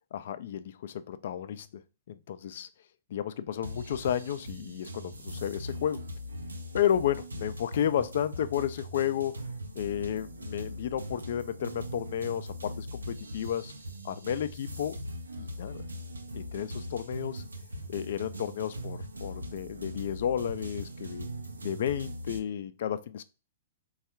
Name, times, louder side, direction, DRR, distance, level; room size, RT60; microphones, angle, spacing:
voice 1, 0.1-1.8 2.1-2.7 3.1-6.0 6.7-9.4 9.8-13.7 14.0-15.0 15.4-15.8 16.3-17.4 17.9-21.3 21.6-23.2, left 9 dB, 60° left, 0.4 m, -32 dB
sound 1, 3.6-22.4, equal, 85° right, 0.5 m, -40 dB
3.5 x 2.4 x 4.2 m
figure-of-eight pair, 115°, 0 cm